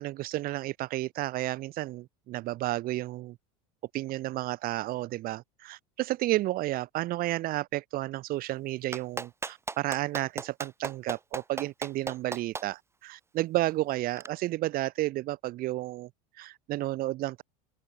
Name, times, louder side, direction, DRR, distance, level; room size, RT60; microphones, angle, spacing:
voice 1, 0.0-3.4 3.9-16.1 16.4-17.4, right 16 dB, 50° right, 4.1 m, -32 dB
Clapping, 8.9-12.6 14.2-14.3, right 4 dB, 15° right, 1.1 m, -35 dB
open air
hypercardioid pair, 85°, 19 cm